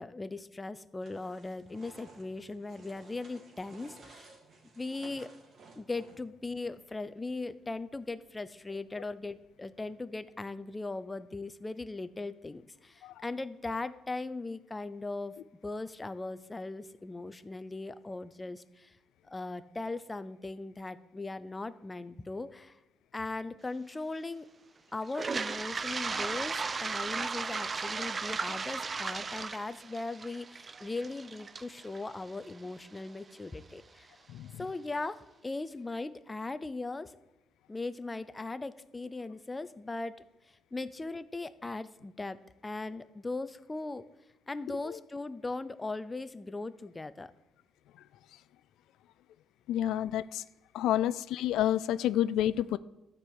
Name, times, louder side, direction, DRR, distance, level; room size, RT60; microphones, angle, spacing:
voice 1, 0.0-4.3 4.7-5.3 5.8-15.4 15.6-19.0 19.3-22.8 23.1-24.5 24.9-34.1 34.6-37.2 37.7-40.2 40.7-44.0 44.5-47.3, left 3 dB, 15° left, 13 dB, 0.6 m, -39 dB
sound 1, 1.0-6.4, right 3 dB, 50° right, 2.2 m, -55 dB
Toilet flush, 25.1-33.0, right 4 dB, 30° right, 0.4 m, -36 dB
voice 2, 34.3-34.6 44.8-45.0 49.7-50.4 50.7-52.8, left 12 dB, 90° left, 17 dB, 0.3 m, -29 dB
13.0 x 4.7 x 8.7 m, 0.96 s
cardioid pair, 115°, 0 cm